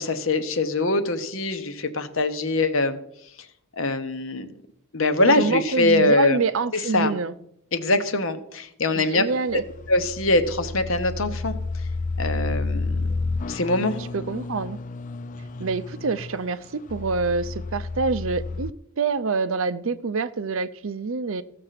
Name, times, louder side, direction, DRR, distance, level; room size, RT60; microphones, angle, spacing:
voice 1, 0.0-3.0 3.8-4.5 4.9-6.4 6.9-7.1 7.7-9.2 9.9-11.5 12.2-13.1 13.5-13.9, left 2 dB, 60° left, 1.1 m, -23 dB
voice 2, 5.2-7.3 8.9-9.6 14.0-14.8 15.6-18.7 19.0-21.4, right 4 dB, 60° right, 0.6 m, -26 dB
sound 1, 9.3-18.7, left 3 dB, 35° left, 0.4 m, -31 dB
15.0 x 6.8 x 5.8 m
head